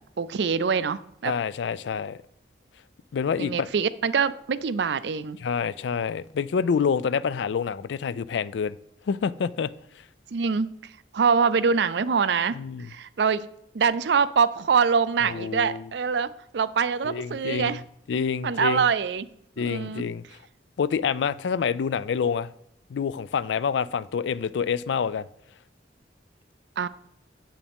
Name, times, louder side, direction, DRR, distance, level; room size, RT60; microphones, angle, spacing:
voice 1, 0.2-1.3 3.4-5.4 10.3-10.7 11.1-12.6 12.9-13.5 13.7-17.8 18.4-19.3 19.6-20.0 26.8-26.9, right 6 dB, 75° right, 0.4 m, -24 dB
voice 2, 1.2-2.2 3.1-3.7 5.4-8.7 9.1-9.7 12.5-12.9 15.2-15.9 17.0-17.8 18.1-18.9 19.6-20.2 20.8-22.5 22.9-25.3, left 6 dB, 80° left, 0.4 m, -27 dB
9.3 x 7.2 x 3.5 m
head